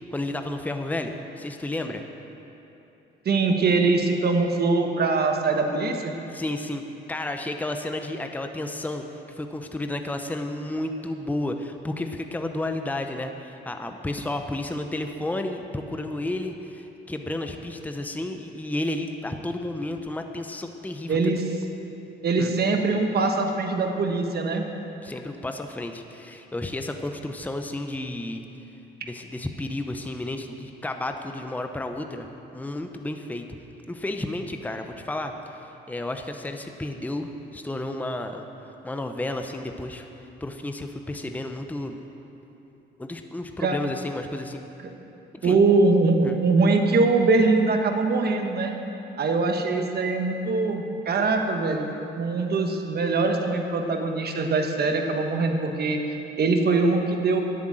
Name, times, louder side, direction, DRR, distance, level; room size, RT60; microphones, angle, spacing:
voice 1, 0.1-2.0 6.3-6.8 7.1-21.2 22.4-22.5 25.0-28.4 29.0-33.4 33.9-38.5 38.8-40.1 40.4-42.0 43.0-44.6 45.4-45.6 46.2-46.4, left 1 dB, 10° left, 5 dB, 0.7 m, -32 dB
voice 2, 3.2-6.1 21.1-21.4 22.2-24.6 43.6-43.8 45.4-48.7 49.2-51.9 52.1-57.4, right 3 dB, 55° right, 4 dB, 1.3 m, -22 dB
10.5 x 8.7 x 7.6 m, 3.0 s
cardioid pair, 90°, 20 cm